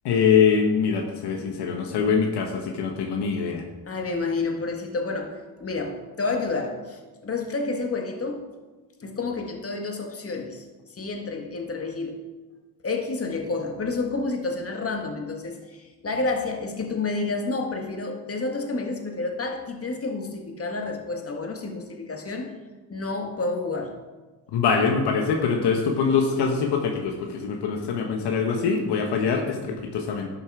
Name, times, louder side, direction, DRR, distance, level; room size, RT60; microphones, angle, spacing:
voice 1, 0.0-3.6 24.5-30.3, left 6 dB, 75° left, 3 dB, 1.2 m, -23 dB
voice 2, 3.9-8.5 9.0-10.6 10.9-12.2 12.8-22.5 22.9-23.9, left 3 dB, 35° left, 2 dB, 1.9 m, -29 dB
11.5 x 5.6 x 4.8 m, 1.2 s
supercardioid pair, 70°, 40 cm